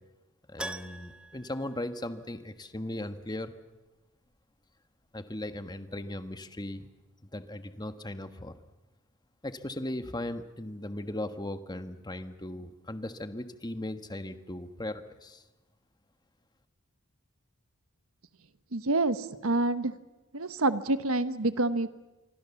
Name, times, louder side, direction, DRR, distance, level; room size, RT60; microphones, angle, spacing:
voice 1, 0.5-3.5 5.1-6.9 7.3-8.5 9.4-15.4, left 1 dB, 20° left, 9 dB, 1.3 m, -38 dB
Keyboard (musical), 0.6-2.6 2.9-3.0 5.7-5.8 6.0-6.1, right 1 dB, 5° right, 0.9 m, -43 dB
voice 2, 18.7-19.9 20.3-21.9, right 2 dB, 70° right, 12 dB, 1.3 m, -27 dB
27.0 x 24.5 x 7.1 m, 1.1 s
head